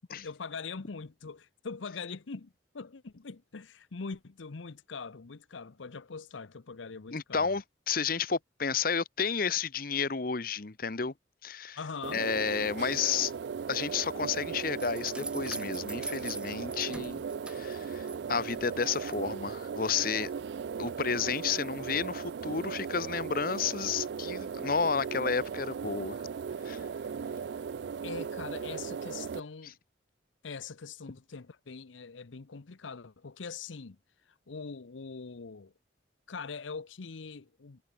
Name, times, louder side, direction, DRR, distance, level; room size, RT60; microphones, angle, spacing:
voice 1, 0.1-7.6 11.8-12.2 28.0-29.7 30.4-34.0 34.5-35.7 36.3-37.8, left 4 dB, 85° left, 0.8 m, -42 dB
voice 2, 7.1-11.1 11.4-11.8 12.1-13.3 13.7-20.3 20.8-26.2 26.6-26.8, left 5 dB, 50° left, 0.9 m, -31 dB
sound 1, 12.0-29.4, right 6 dB, 65° right, 0.3 m, -37 dB
sound 2, 14.8-18.2 18.5-19.2, right 2 dB, 5° right, 1.0 m, -43 dB
head